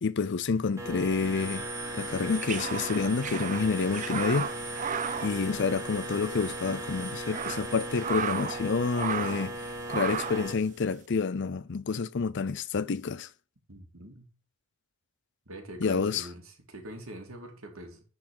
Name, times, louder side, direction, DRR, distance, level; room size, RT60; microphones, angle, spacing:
voice 1, 0.0-1.7 1.9-4.5 5.2-13.3 15.8-16.2, left 5 dB, 55° left, 0.5 m, -29 dB
sound 1, 0.8-10.5, right 1 dB, 15° right, 2.2 m, -37 dB
sound 2, 2.1-6.2 6.4-6.6 7.1-8.6 8.9-9.5 9.9-10.5, right 7 dB, 35° right, 0.4 m, -35 dB
voice 2, 13.7-14.3 15.5-18.0, right 1 dB, 75° right, 2.4 m, -44 dB
10.5 x 4.1 x 7.1 m
head